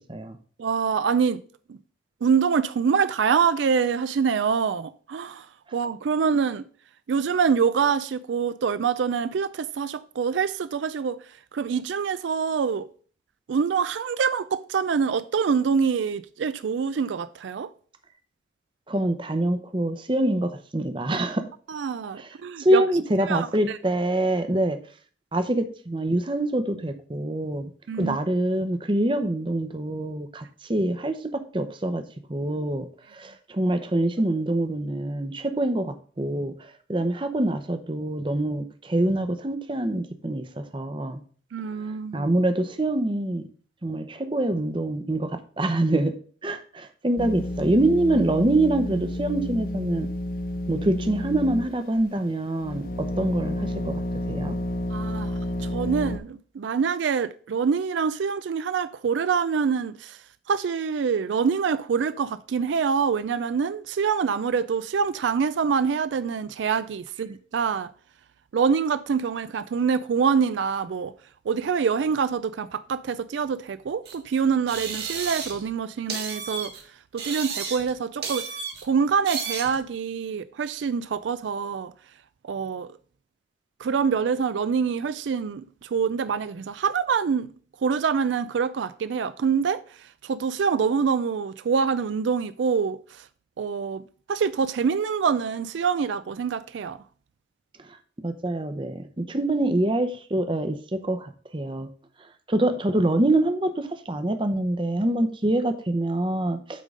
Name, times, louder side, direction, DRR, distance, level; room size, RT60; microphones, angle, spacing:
voice 1, 0.6-1.4 1.7-1.8 2.2-5.5 5.7-6.6 7.1-11.2 11.5-12.9 13.5-17.7 21.7-22.8 23.3-23.5 27.9-28.2 41.5-42.3 54.9-55.3 55.6-60.2 60.5-67.9 68.5-71.1 71.5-76.7 77.1-78.5 78.8-81.9 82.5-82.9 83.8-87.5 87.8-89.8 90.2-93.2 93.6-97.0, right 6 dB, 80° right, 0.4 m, -25 dB
voice 2, 18.9-21.4 22.2-24.8 25.3-27.7 28.0-30.4 30.7-31.2 31.5-32.0 32.3-32.9 33.1-41.2 42.1-43.5 43.8-46.1 46.4-50.1 50.7-52.8 53.2-54.0 54.3-54.6 98.2-101.9 102.5-106.8, right 1 dB, 25° right, 0.7 m, -25 dB
sound 1, 47.2-52.0 52.6-56.2, left 1 dB, 50° left, 0.7 m, -30 dB
sound 2, 74.1-74.2 74.7-75.7 76.1-76.8 77.2-77.9 78.2-78.8 79.3-79.8, right 6 dB, 60° right, 1.6 m, -33 dB
8.4 x 3.7 x 5.3 m
head